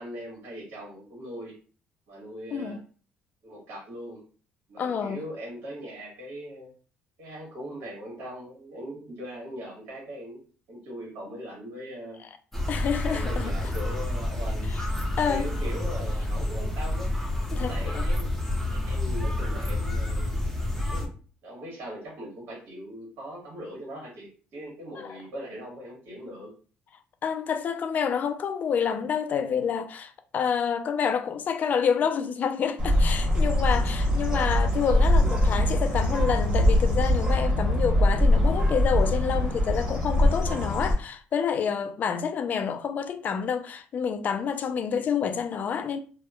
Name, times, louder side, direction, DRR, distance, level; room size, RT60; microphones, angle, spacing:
voice 1, 0.0-1.5 2.1-2.8 3.4-4.2 4.7-6.7 7.2-10.4 10.7-12.2 13.0-14.7 15.1-17.1 17.6-18.3 18.7-20.3 20.9-21.1 21.4-26.5, equal, 70° right, 1.2 m, -40 dB
voice 2, 4.8-5.2 12.7-13.5 14.7-14.8 15.2-15.5 17.5-18.0 25.0-25.2 27.2-46.0, left 7 dB, 50° left, 0.3 m, -28 dB
sound 1, 12.5-21.1, left 1 dB, 5° left, 0.6 m, -29 dB
Bird, 32.8-40.9, left 1 dB, 20° right, 1.0 m, -23 dB
2.9 x 2.1 x 2.3 m
cardioid pair, 100°, 4 cm